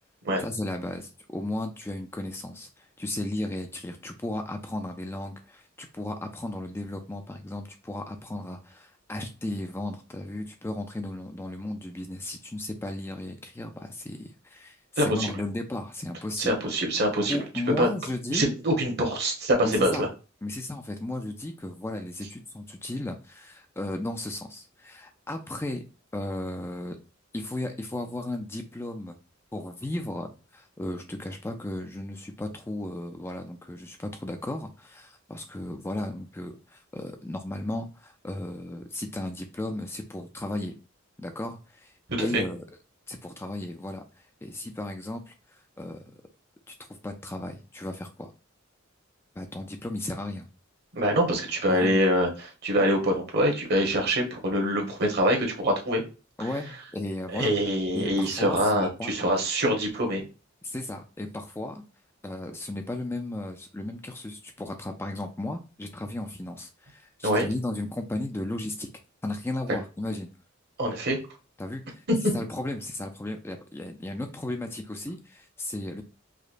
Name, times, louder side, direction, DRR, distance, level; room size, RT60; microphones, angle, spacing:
voice 1, 0.4-16.6 17.3-18.5 19.6-20.1 20.4-25.8 26.1-27.0 27.3-29.2 29.5-40.8 41.2-41.9 42.2-42.6 43.1-46.1 46.7-46.8 47.0-48.3 49.4-50.5 51.6-52.0 56.4-57.6 57.9-59.3 60.6-61.8 62.2-68.9 69.2-70.3 71.6-72.0 72.3-76.0, left 1 dB, 10° left, 5 dB, 0.4 m, -35 dB
voice 2, 15.0-15.3 16.4-17.4 17.8-17.9 18.3-20.1 42.2-42.4 50.9-56.0 57.3-60.2 67.2-67.5 70.8-71.2 72.1-72.3, equal, 55° right, 1 dB, 1.2 m, -24 dB
4.9 x 2.2 x 2.4 m, 0.32 s
head